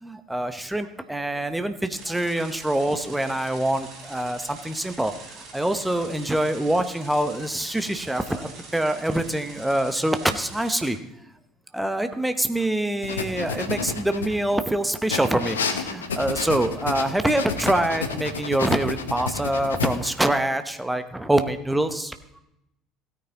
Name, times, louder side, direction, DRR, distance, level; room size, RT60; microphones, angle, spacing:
voice 1, 0.0-11.0 11.7-22.1, right 1 dB, 5° right, 8 dB, 1.0 m, -25 dB
sound 1, 1.9-10.9, right 3 dB, 45° right, 3.4 m, -44 dB
sound 2, 13.0-14.6 15.1-20.1, left 5 dB, 75° left, 0.8 m, -30 dB
16.5 x 9.4 x 2.9 m, 0.82 s
figure-of-eight pair, 60°, 0 cm